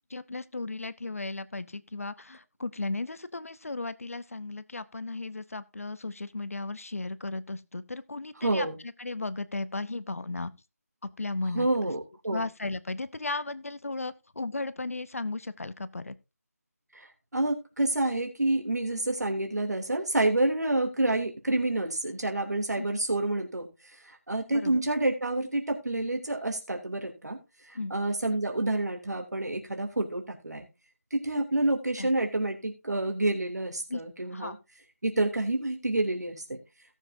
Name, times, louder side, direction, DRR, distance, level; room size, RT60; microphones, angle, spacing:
voice 1, 0.1-8.7 9.0-10.5 11.2-11.9 12.3-16.1 22.8-22.9 24.5-24.8 27.7-27.9 32.0-32.1 33.9-34.0 34.3-34.6, left 3 dB, 55° left, 0.8 m, -35 dB
voice 2, 8.4-8.8 11.5-12.4 16.9-27.4 27.6-30.6 31.1-34.6 35.0-36.6, right 2 dB, 80° right, 3.0 m, -28 dB
17.5 x 7.4 x 2.7 m
figure-of-eight pair, 175°, 9 cm